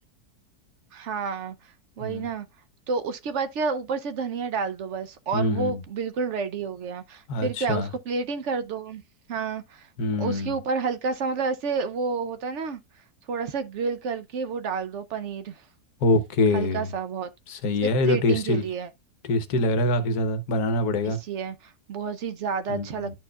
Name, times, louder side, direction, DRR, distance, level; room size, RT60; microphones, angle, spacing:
voice 1, 0.9-1.5 2.0-2.5 2.9-9.0 9.3-9.9 10.2-12.8 13.3-15.6 16.5-17.3 17.8-18.9 21.0-23.1, right 5 dB, 65° right, 0.7 m, -30 dB
voice 2, 5.3-5.8 7.3-7.9 10.0-10.6 16.0-16.9 17.5-18.6 19.3-21.2 22.7-23.1, left 2 dB, 70° left, 1.3 m, -24 dB
11.0 x 4.5 x 2.3 m
omnidirectional pair, 1.8 m